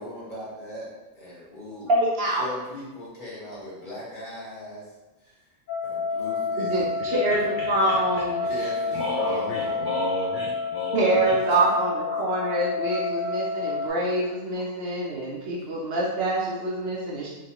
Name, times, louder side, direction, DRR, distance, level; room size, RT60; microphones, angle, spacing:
voice 1, 0.0-1.9 2.4-4.9 5.2-5.4 5.8-7.0 8.4-9.9 11.5-11.6 14.5-14.6, left 1 dB, 40° left, -8 dB, 1.2 m, -39 dB
voice 2, 1.9-2.4 6.6-8.5 10.9-17.3, right 1 dB, 60° right, -4 dB, 0.8 m, -25 dB
sound 1, 5.7-13.9, left 4 dB, 80° left, 1.1 m, -29 dB
voice 3, 7.0-7.9 8.6-11.4, left 2 dB, 60° left, -3 dB, 0.5 m, -33 dB
3.1 x 3.0 x 2.9 m, 1.1 s
omnidirectional pair, 1.3 m